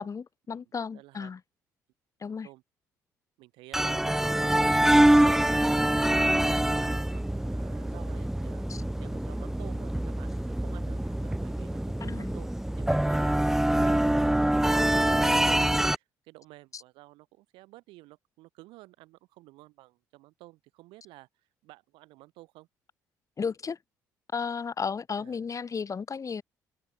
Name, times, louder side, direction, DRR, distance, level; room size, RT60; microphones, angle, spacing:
voice 1, 0.0-1.4 2.2-2.5 8.7-8.8 12.0-12.4 16.7-16.8 23.4-23.8 24.3-26.4, left 5 dB, 35° left, 6.5 m, -34 dB
voice 2, 0.9-1.3 2.4-2.6 3.4-8.7 9.0-21.3 21.6-22.7 25.2-25.5, right 20 dB, 65° right, 5.8 m, -52 dB
sound 1, 3.7-16.0, right 1 dB, 5° right, 0.5 m, -25 dB
open air
figure-of-eight pair, 50°, 9 cm